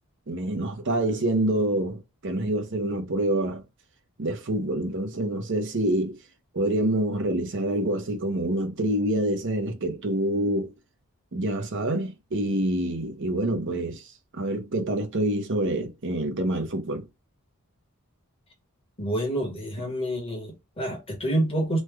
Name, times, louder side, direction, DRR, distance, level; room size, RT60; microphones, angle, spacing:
voice 1, 0.3-3.6 4.2-6.2 6.5-10.7 11.3-14.0 14.3-17.0, right 1 dB, 55° right, 0.7 m, -26 dB
voice 2, 19.0-21.8, right 1 dB, 25° left, 1.2 m, -28 dB
3.1 x 2.2 x 3.5 m
head